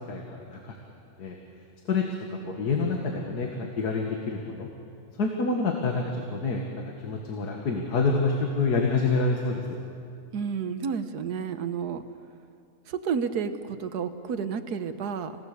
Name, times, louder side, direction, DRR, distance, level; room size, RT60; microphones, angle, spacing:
voice 1, 0.1-0.8 1.2-1.4 1.9-2.0 2.3-4.7 5.2-9.6, left 3 dB, 90° left, 1 dB, 2.2 m, -27 dB
voice 2, 10.3-12.0 12.9-15.4, right 6 dB, 90° right, 10 dB, 1.5 m, -31 dB
27.5 x 17.0 x 6.7 m, 2.5 s
omnidirectional pair, 1.6 m